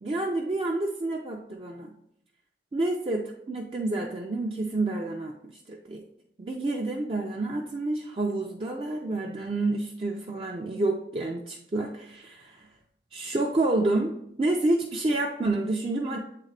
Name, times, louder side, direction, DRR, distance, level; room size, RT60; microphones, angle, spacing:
voice 1, 0.0-1.9 2.7-6.0 6.4-12.7 13.1-14.1 14.4-16.2, right 2 dB, 30° right, 0 dB, 0.4 m, -29 dB
7.9 x 3.8 x 3.2 m, 0.76 s
head